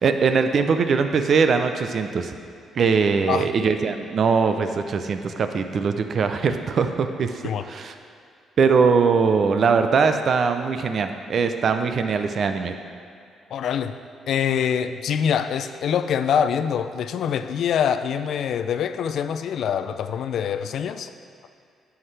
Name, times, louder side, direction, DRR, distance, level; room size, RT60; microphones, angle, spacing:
voice 1, 0.0-2.4 2.7-7.9 8.6-12.7, right 5 dB, 55° right, 7 dB, 0.5 m, -21 dB
voice 2, 13.5-13.9 14.3-21.1, left 8 dB, 70° left, 10 dB, 0.3 m, -24 dB
9.5 x 5.9 x 3.3 m, 2.3 s
cardioid pair, 90°, 0 cm